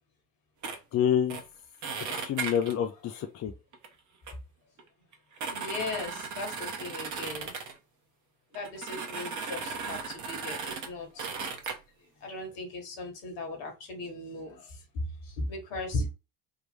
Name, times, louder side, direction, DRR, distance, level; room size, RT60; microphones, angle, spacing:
sound 1, 0.6-0.8 1.3-1.4 1.8-2.8 3.7-3.9 4.3-4.4 4.8-4.9 5.1-7.8 8.5-10.9 11.2-11.8, right 5 dB, 35° right, 1.1 m, -36 dB
voice 1, 0.9-1.4 2.1-3.5, left 9 dB, 35° left, 0.6 m, -28 dB
voice 2, 5.5-7.6 8.5-11.3 12.2-14.6 15.3-16.1, left 2 dB, 60° left, 1.8 m, -37 dB
3.6 x 2.5 x 3.4 m
hypercardioid pair, 60°, 49 cm